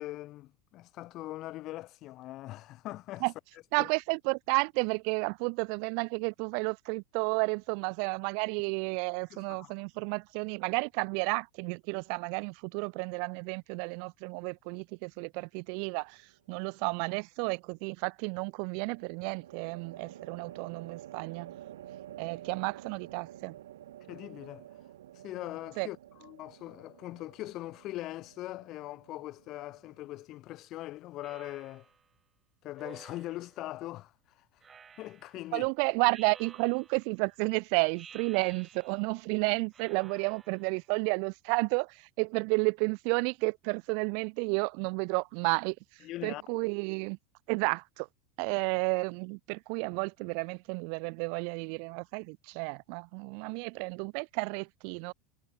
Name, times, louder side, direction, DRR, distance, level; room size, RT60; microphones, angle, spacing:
voice 1, 0.0-3.2 3.8-3.9 9.3-9.7 24.1-24.7 25.2-31.9 32.6-34.1 35.0-35.7 46.0-46.4, left 16 dB, 50° left, 1.3 m, -41 dB
voice 2, 3.7-16.2 16.5-21.6 22.2-23.6 25.8-25.9 35.5-45.8 46.2-47.2 47.5-48.1 48.4-55.1, right 40 dB or more, 60° right, 0.6 m, -32 dB
sound 1, 15.8-16.3 18.9-30.3, right 12 dB, 80° right, 2.2 m, -50 dB
Speech synthesizer, 31.2-32.0 32.8-33.6 34.6-35.4 36.1-37.1 37.9-39.2 39.7-40.8, right 6 dB, 25° right, 2.7 m, -53 dB
hypercardioid pair, 100°, 0 cm